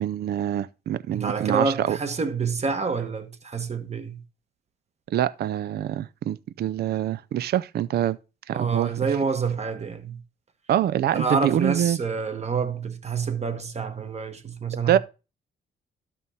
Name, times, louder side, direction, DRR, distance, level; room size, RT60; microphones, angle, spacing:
voice 1, 0.0-2.0 5.1-8.2 8.5-8.9 10.7-12.0 14.9-15.0, right 11 dB, 55° right, 0.4 m, -25 dB
voice 2, 1.1-4.2 8.5-10.2 11.1-15.0, right 5 dB, 35° right, 1.2 m, -27 dB
13.0 x 5.5 x 2.8 m
cardioid pair, 90°, 20 cm